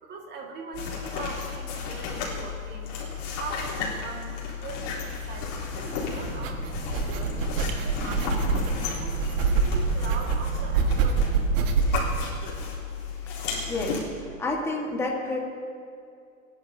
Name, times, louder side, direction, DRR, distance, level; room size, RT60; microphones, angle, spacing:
voice 1, 0.0-3.0 3.4-8.5 9.0-12.7, right 4 dB, 25° right, 1 dB, 1.9 m, -42 dB
sound 1, 0.7-14.0, left 5 dB, 50° left, 3.8 m, -33 dB
sound 2, 6.1-12.2, right 5 dB, 65° right, 1.7 m, -26 dB
voice 2, 13.2-14.0 14.4-15.4, left 2 dB, 5° left, -1 dB, 1.5 m, -30 dB
26.5 x 11.0 x 2.8 m, 2.4 s
hypercardioid pair, 145°, 41 cm